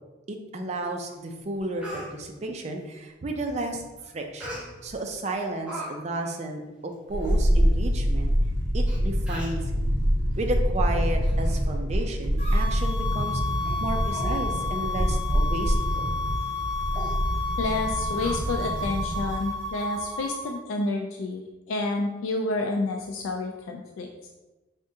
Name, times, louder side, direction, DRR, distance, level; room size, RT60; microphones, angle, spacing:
voice 1, 0.3-3.8 4.1-8.3 8.7-9.8 10.4-13.4 13.8-16.1, right 2 dB, 35° right, 4 dB, 0.4 m, -33 dB
Speech, 1.1-1.2 1.5-2.1 4.4-5.0 5.4-5.9 6.2-6.4 6.9-7.0 7.2-7.4 8.1-8.2 8.9-9.0 9.3-9.6 10.3-10.5 10.9-11.6 11.9-12.1 12.5-12.6 13.2-13.3 13.6-13.8 14.1-14.5 14.8-14.9 15.3-15.5 15.9-16.0 16.4-16.6 16.9-17.1 18.2-18.9 19.2-19.3, right 1 dB, 5° right, 0.8 m, -40 dB
sound 1, 7.1-19.5 19.7-19.8, equal, 65° right, 0.7 m, -25 dB
sound 2, 12.4-20.5, left 3 dB, 35° left, 0.9 m, -32 dB
voice 2, 17.6-21.4 21.7-24.1, left 2 dB, 85° left, 2 dB, 0.3 m, -29 dB
3.6 x 3.4 x 2.7 m, 1.1 s
head